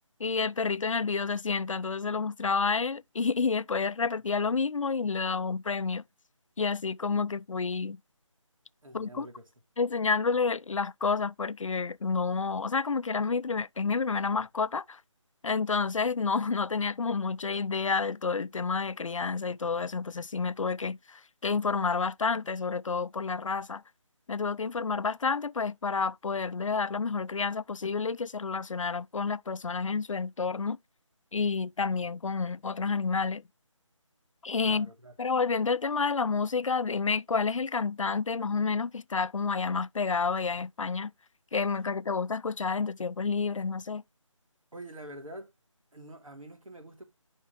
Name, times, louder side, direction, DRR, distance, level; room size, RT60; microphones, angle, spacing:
voice 1, 0.2-6.0 6.6-8.0 8.9-9.3 9.8-15.0 15.4-23.8 24.3-30.8 31.3-33.4 34.4-34.9 35.2-41.1 41.5-44.0, left 4 dB, 75° left, 0.5 m, -29 dB
voice 2, 8.8-9.5 34.6-35.1 44.7-45.5 45.9-47.0, right 1 dB, 90° right, 3.2 m, -46 dB
10.0 x 5.4 x 3.2 m
figure-of-eight pair, 170°, 17 cm